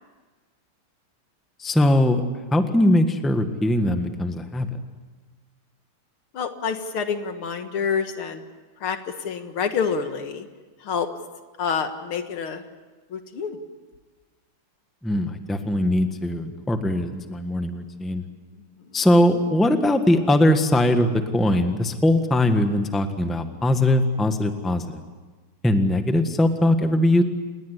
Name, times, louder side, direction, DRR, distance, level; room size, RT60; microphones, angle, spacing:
voice 1, 1.6-2.2 2.5-4.8 15.0-18.2 18.9-25.0 25.6-27.2, left 1 dB, ahead, 7 dB, 1.2 m, -21 dB
voice 2, 6.3-8.4 8.8-10.5 10.8-11.1 11.6-12.6 13.1-13.6, left 6 dB, 80° left, 8 dB, 2.5 m, -27 dB
29.0 x 20.0 x 8.3 m, 1.3 s
omnidirectional pair, 2.3 m